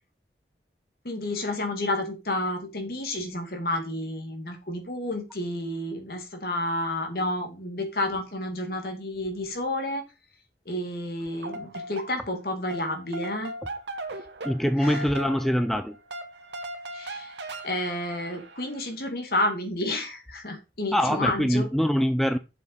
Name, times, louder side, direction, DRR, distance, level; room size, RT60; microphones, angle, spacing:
voice 1, 1.0-10.1 10.7-13.5 14.8-15.1 16.9-17.3 17.6-21.7, left 1 dB, 60° left, 2.5 m, -30 dB
sound 1, 11.2-12.4 12.7-18.8, right 1 dB, 85° right, 1.5 m, -39 dB
voice 2, 14.4-16.0 20.9-22.4, equal, ahead, 0.5 m, -24 dB
7.4 x 6.2 x 5.6 m
head